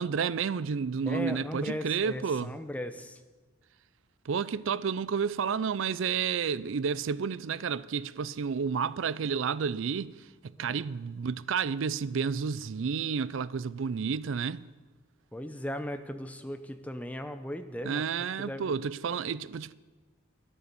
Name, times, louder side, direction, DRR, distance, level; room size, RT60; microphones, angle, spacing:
voice 1, 0.0-2.5 4.3-10.2 10.4-14.6 17.8-19.7, right 6 dB, 70° right, 0.4 m, -31 dB
voice 2, 1.1-3.2 10.6-10.8 15.3-18.7, left 1 dB, 5° left, 0.7 m, -37 dB
12.5 x 10.5 x 6.9 m
head